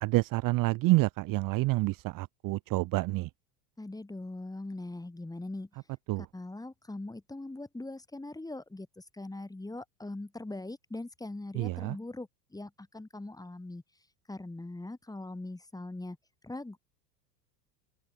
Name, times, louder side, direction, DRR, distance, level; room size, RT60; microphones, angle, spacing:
voice 1, 0.0-3.3 6.1-6.2 11.5-12.0, right 21 dB, 40° right, 0.9 m, -28 dB
voice 2, 3.8-5.7 6.2-13.8 14.3-16.2 16.4-16.8, left 2 dB, 5° left, 5.4 m, -41 dB
open air
hypercardioid pair, 95°, 49 cm